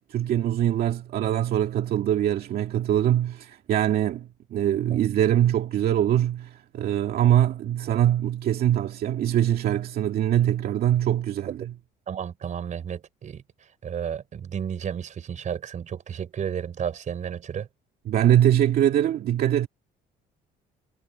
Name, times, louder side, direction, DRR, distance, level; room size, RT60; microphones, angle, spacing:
voice 1, 0.1-11.7 18.1-19.7, right 11 dB, 65° right, 2.2 m, -23 dB
voice 2, 12.1-13.4 13.8-17.7, right 8 dB, 45° right, 4.8 m, -32 dB
cardioid pair, 110°, 17 cm